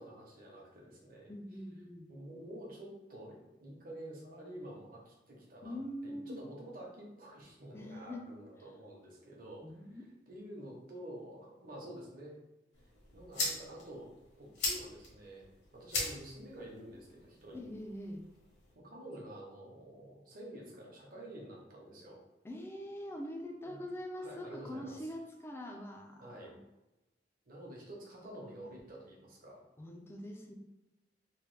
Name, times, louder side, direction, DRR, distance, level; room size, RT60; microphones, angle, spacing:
voice 1, 0.0-1.3 2.1-5.8 6.0-9.6 9.9-12.4 13.1-14.1 14.4-17.7 18.7-22.2 23.6-23.8 24.1-25.0 26.2-26.5 27.4-29.6, right 1 dB, 50° right, -2 dB, 0.8 m, -49 dB
voice 2, 1.3-2.3 5.6-6.4 7.7-8.2 9.6-10.1 17.5-18.2 22.4-26.6 28.5-28.7 29.8-30.5, equal, 15° left, 2 dB, 0.3 m, -44 dB
sound 1, 12.7-18.7, left 2 dB, 70° left, 1.0 m, -41 dB
3.1 x 2.2 x 3.2 m, 1.0 s
head